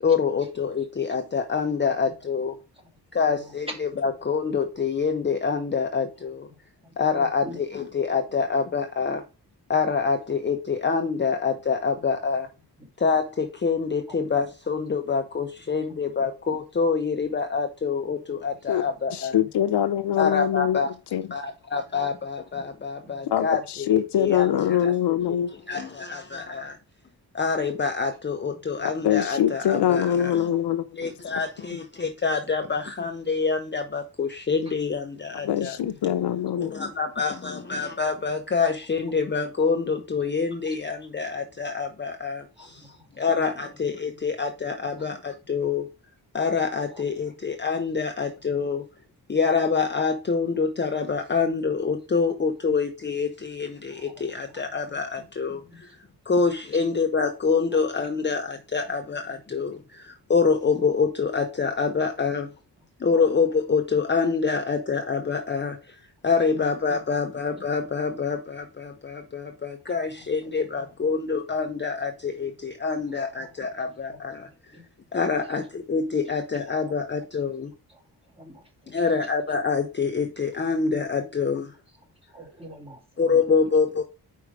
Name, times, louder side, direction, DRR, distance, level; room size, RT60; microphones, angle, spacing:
voice 1, 0.0-2.6 3.1-6.5 7.0-9.2 9.7-12.5 13.0-19.4 20.2-20.9 21.3-25.2 25.7-26.8 27.3-30.5 31.0-35.8 36.6-45.9 46.3-48.9 49.3-55.9 56.3-62.5 63.0-66.0 66.2-74.5 75.1-77.7 78.9-81.7 83.2-84.0, left 5 dB, 25° left, 0.7 m, -26 dB
voice 2, 3.1-3.5 6.8-7.6 12.8-12.9 14.1-14.2 15.9-16.3 18.1-18.2 18.7-18.8 23.0-23.1 28.8-28.9 35.9-36.0 36.6-36.7 42.6-43.7 44.8-45.1 46.9-47.0 54.0-54.1 54.5-54.7 55.6-55.8 56.3-56.4 56.7-56.8 63.1-63.2 66.5-66.7 69.9-70.0 70.8-70.9 73.1-73.3 74.1-74.2 74.7-74.8 78.4-79.1 82.3-83.3, equal, 15° right, 2.0 m, -46 dB
voice 3, 19.1-20.9 21.1-21.3 23.2-25.5 28.8-30.9 35.3-36.7, left 10 dB, 80° left, 0.7 m, -23 dB
5.0 x 4.7 x 4.7 m
cardioid pair, 90°, 40 cm